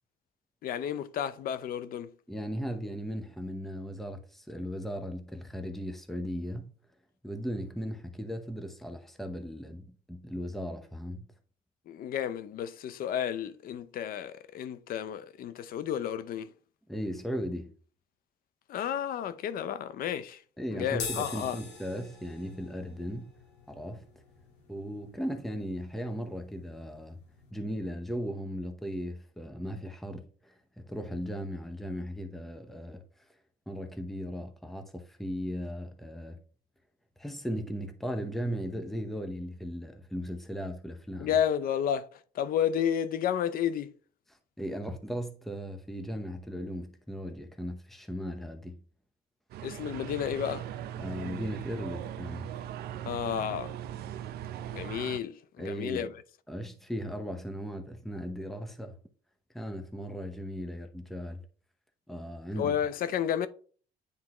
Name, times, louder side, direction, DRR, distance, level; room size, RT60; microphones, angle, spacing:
voice 1, 0.6-2.1 11.9-16.5 18.7-20.4 20.7-21.6 41.2-42.1 42.3-43.9 49.6-50.7 53.1-53.7 54.7-56.1 62.5-63.5, left 9 dB, 60° left, 0.6 m, -31 dB
voice 2, 2.3-6.7 7.2-11.3 16.9-17.7 20.6-23.3 23.7-24.1 24.7-27.2 27.5-33.0 33.7-36.4 37.2-41.3 44.6-48.8 51.0-52.5 55.6-56.1 56.5-59.0 59.5-61.4 62.1-62.8, equal, ahead, 0.8 m, -37 dB
sound 1, 20.9-27.5, left 5 dB, 85° left, 1.8 m, -45 dB
sound 2, 49.5-55.2, right 11 dB, 70° right, 0.6 m, -39 dB
9.7 x 3.6 x 3.0 m
cardioid pair, 110°, 17 cm